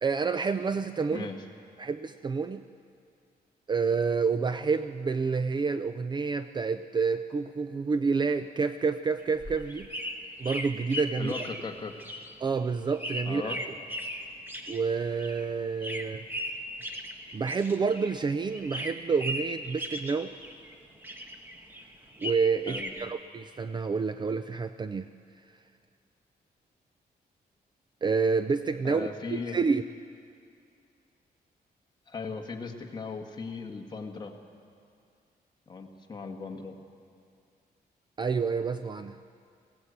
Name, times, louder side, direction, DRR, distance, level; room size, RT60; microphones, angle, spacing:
voice 1, 0.0-1.3 1.8-2.6 3.7-9.9 10.4-11.3 12.4-13.6 14.7-16.3 17.3-20.3 22.2-25.1 28.0-29.8 38.2-39.2, right 5 dB, 25° right, 10 dB, 0.4 m, -28 dB
sound 1, 9.2-18.2 18.5-20.7 21.0-23.1, equal, 10° right, 1.2 m, -38 dB
voice 2, 11.2-11.9 13.2-13.6 22.7-22.9 28.8-29.6 32.1-34.3 35.7-36.7, left 4 dB, 25° left, 2 dB, 1.6 m, -37 dB
20.0 x 16.5 x 8.0 m, 2.3 s
wide cardioid pair, 180°, 17 cm